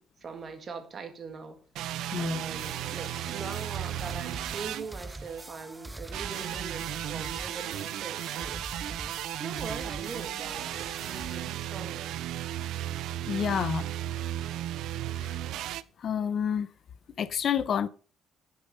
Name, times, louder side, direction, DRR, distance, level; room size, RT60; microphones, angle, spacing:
voice 1, 0.2-1.6 2.2-12.1, right 5 dB, 35° right, 2.0 m, -42 dB
sound 1, 1.7-5.5 6.1-15.8, right 12 dB, 75° right, 0.5 m, -35 dB
voice 2, 2.1-2.5 13.3-13.9 15.1-15.4 16.0-16.7 17.2-17.9, left 8 dB, 45° left, 0.5 m, -29 dB
sound 2, 2.6-11.4, right 2 dB, 10° right, 0.5 m, -44 dB
10.0 x 6.8 x 5.5 m
cardioid pair, 140°, 0 cm